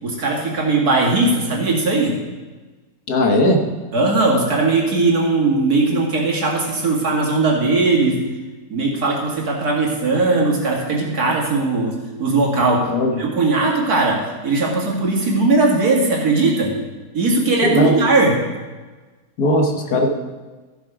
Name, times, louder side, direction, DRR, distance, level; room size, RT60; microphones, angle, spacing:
voice 1, 0.0-2.1 3.9-8.2 8.7-12.9 13.2-16.7 17.1-18.4, right 3 dB, 75° right, -2 dB, 2.6 m, -18 dB
voice 2, 3.1-3.6 12.9-13.2 17.6-17.9 19.4-20.1, left 1 dB, 80° left, 3 dB, 1.9 m, -18 dB
14.5 x 7.1 x 5.0 m, 1.3 s
omnidirectional pair, 1.6 m